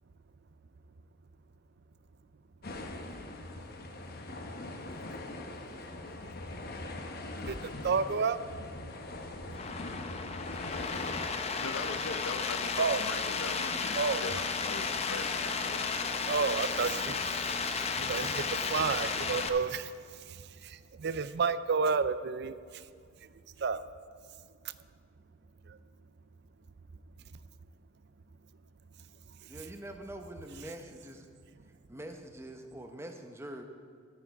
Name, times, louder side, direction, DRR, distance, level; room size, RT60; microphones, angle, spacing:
sound 1, 2.6-11.3, left 2 dB, 50° left, 0.9 m, -42 dB
voice 1, 7.5-8.4 9.8-11.0 12.8-13.0 13.9-14.2 16.2-22.9 23.2-23.9 24.6-24.9 25.6-25.8 29.3-29.5, right 5 dB, 55° right, 14 dB, 0.4 m, -32 dB
sound 2, 9.5-19.5, left 5 dB, 30° left, 0.6 m, -33 dB
voice 2, 11.4-16.3, left 4 dB, 70° left, 10 dB, 0.7 m, -41 dB
voice 3, 29.5-31.3 31.9-33.6, right 1 dB, 15° right, 4 dB, 0.8 m, -44 dB
12.5 x 9.0 x 4.7 m, 2.3 s
head